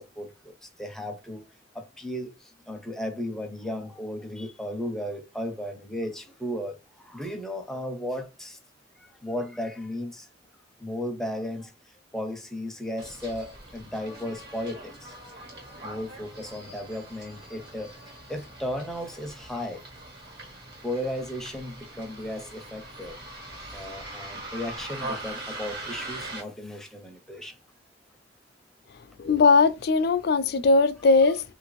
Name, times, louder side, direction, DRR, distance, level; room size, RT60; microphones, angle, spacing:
voice 1, 0.0-1.4 1.7-8.6 9.0-10.3 10.8-11.7 12.1-15.1 15.8-17.9 18.3-19.8 20.8-23.2 23.7-27.6, left 1 dB, 5° left, 0.5 m, -35 dB
Bus, 13.0-26.4, right 2 dB, 60° right, 1.3 m, -41 dB
voice 2, 29.2-31.4, left 4 dB, 60° left, 0.4 m, -19 dB
3.1 x 2.5 x 3.0 m
head